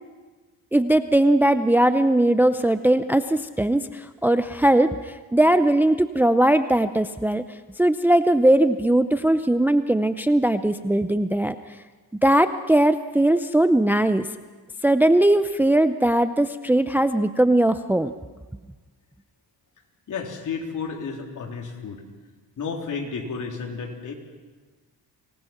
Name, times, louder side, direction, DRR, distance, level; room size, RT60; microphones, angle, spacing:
voice 1, 0.7-7.4 7.8-11.6 12.2-14.3 14.8-18.1, right 1 dB, 5° right, 11 dB, 0.6 m, -19 dB
voice 2, 20.1-22.0 22.6-24.1, left 5 dB, 55° left, 1 dB, 3.7 m, -32 dB
24.5 x 19.0 x 5.9 m, 1.3 s
cardioid pair, 95°, 37 cm